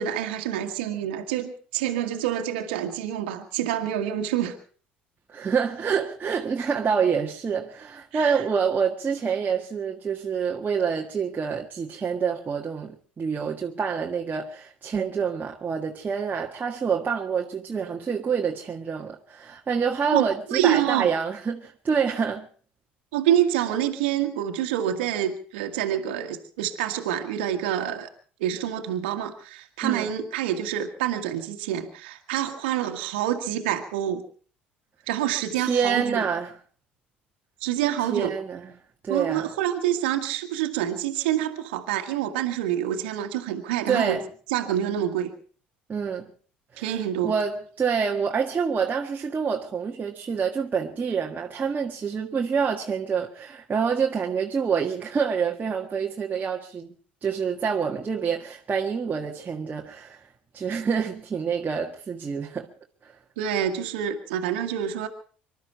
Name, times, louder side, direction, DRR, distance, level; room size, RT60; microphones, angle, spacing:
voice 1, 0.0-4.6 8.1-8.4 20.1-21.1 23.1-28.1 28.4-34.2 35.1-36.2 37.6-38.3 39.1-44.2 44.5-45.3 46.8-47.3 63.4-65.1, right 11 dB, 75° right, 1.7 m, -27 dB
voice 2, 5.3-22.5 29.8-30.1 35.5-36.6 38.1-38.7 39.0-39.5 43.9-44.2 45.9-46.3 46.7-56.9 57.2-60.3 60.5-62.7, right 6 dB, 30° right, 1.6 m, -27 dB
25.5 x 12.0 x 4.5 m
hypercardioid pair, 65°, 6 cm